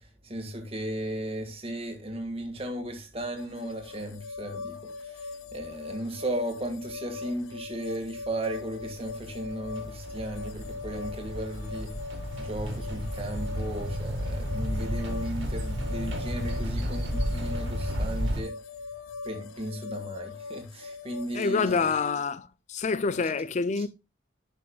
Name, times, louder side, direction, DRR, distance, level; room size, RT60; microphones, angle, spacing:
voice 1, 0.2-11.9 12.4-18.5 19.2-21.9, right 1 dB, 30° right, 1.6 m, -35 dB
sound 1, 3.4-21.9, left 4 dB, 80° left, 0.7 m, -41 dB
sound 2, 8.8-18.4, equal, 65° right, 2.3 m, -32 dB
voice 2, 21.3-23.9, left 4 dB, 35° left, 0.4 m, -27 dB
11.5 x 6.1 x 2.3 m
head